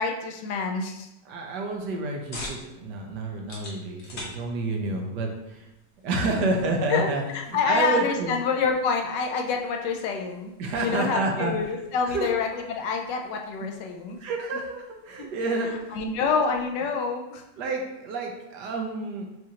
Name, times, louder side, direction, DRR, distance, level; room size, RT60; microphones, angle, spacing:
voice 1, 0.0-1.1 6.5-6.6 6.9-14.2 15.2-15.3 15.9-17.4, left 5 dB, 75° left, 2 dB, 1.2 m, -27 dB
voice 2, 1.3-5.7 6.0-7.2 7.5-8.3 10.6-11.5 12.1-12.3 14.2-16.0 17.6-19.2, right 3 dB, 70° right, 1 dB, 1.3 m, -29 dB
sound 1, 1.7-16.8, left 2 dB, 50° left, 1.4 m, -48 dB
7.2 x 2.5 x 2.8 m, 0.90 s
omnidirectional pair, 2.0 m